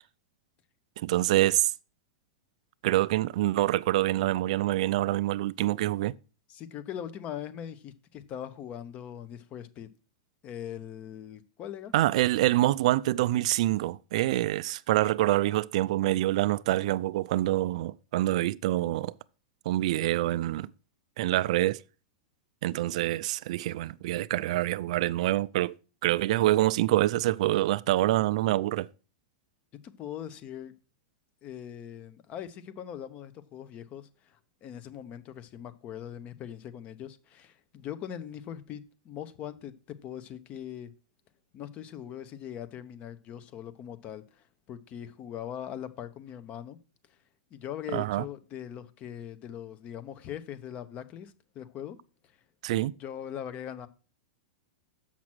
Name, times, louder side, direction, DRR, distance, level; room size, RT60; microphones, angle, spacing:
voice 1, 1.0-1.7 2.8-6.1 11.9-19.1 19.7-20.7 21.2-21.8 22.6-25.7 26.0-28.9 47.9-48.3 52.6-52.9, right 15 dB, 60° right, 0.4 m, -26 dB
voice 2, 6.5-9.9 10.4-11.9 29.7-30.7 31.4-40.9 41.5-46.8 47.5-52.0 53.0-53.9, left 10 dB, 30° left, 0.9 m, -41 dB
7.4 x 5.9 x 6.1 m
hypercardioid pair, 140°, 4 cm